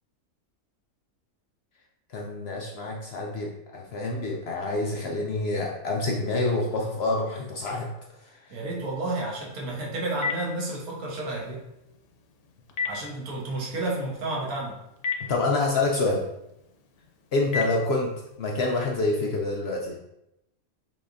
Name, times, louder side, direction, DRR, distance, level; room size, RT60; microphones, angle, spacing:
voice 1, 2.1-7.9 8.5-8.6 15.2-16.3 17.3-20.0, left 2 dB, 65° left, 0 dB, 0.6 m, -27 dB
voice 2, 8.5-11.6 12.9-14.8, right 2 dB, 85° right, -2 dB, 1.6 m, -31 dB
Telephone, 9.5-18.4, left 5 dB, 85° left, 1.1 m, -38 dB
5.7 x 3.5 x 2.6 m, 0.86 s
omnidirectional pair, 1.5 m